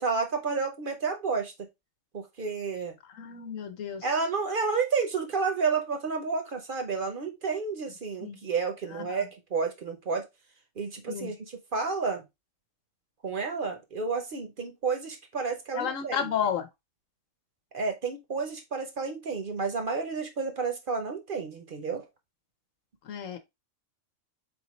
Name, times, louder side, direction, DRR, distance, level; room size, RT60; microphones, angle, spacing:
voice 1, 0.0-1.5 2.1-2.9 4.0-10.2 10.8-12.2 13.2-16.3 17.7-22.0, right 5 dB, 50° right, 0.8 m, -31 dB
voice 2, 3.1-4.1 8.2-8.4 8.9-9.3 11.1-11.3 15.7-16.7 23.0-23.4, left 8 dB, 85° left, 1.2 m, -32 dB
4.1 x 3.6 x 3.0 m
omnidirectional pair, 1.3 m